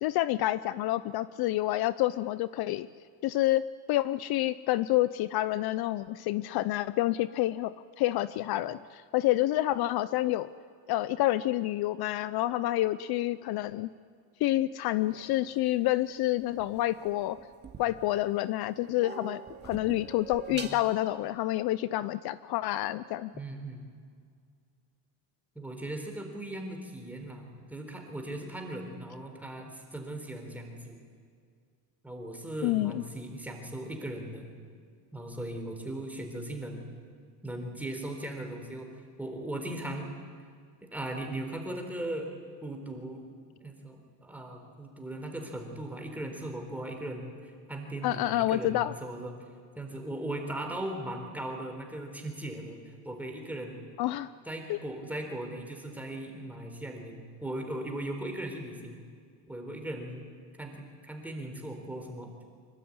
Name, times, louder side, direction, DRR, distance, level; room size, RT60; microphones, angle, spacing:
voice 1, 0.0-2.9 3.2-3.6 3.9-10.5 10.9-13.9 14.4-17.4 17.8-23.3 32.6-33.0 48.0-48.9 54.0-54.3 54.7-54.8, left 15 dB, 60° left, 16 dB, 0.7 m, -28 dB
sound 1, 15.1-18.3 18.6-20.9, right 5 dB, 25° right, 2.4 m, -44 dB
voice 2, 23.3-23.9 25.6-31.0 32.0-34.5 35.1-36.8 37.4-38.9 39.2-40.1 40.9-42.3 42.6-43.2 43.6-49.3 49.8-53.8 54.5-59.0 59.5-60.3 60.6-62.3, right 1 dB, 5° right, 3 dB, 4.0 m, -38 dB
25.5 x 23.5 x 9.7 m, 2.1 s
cardioid pair, 160°, 43 cm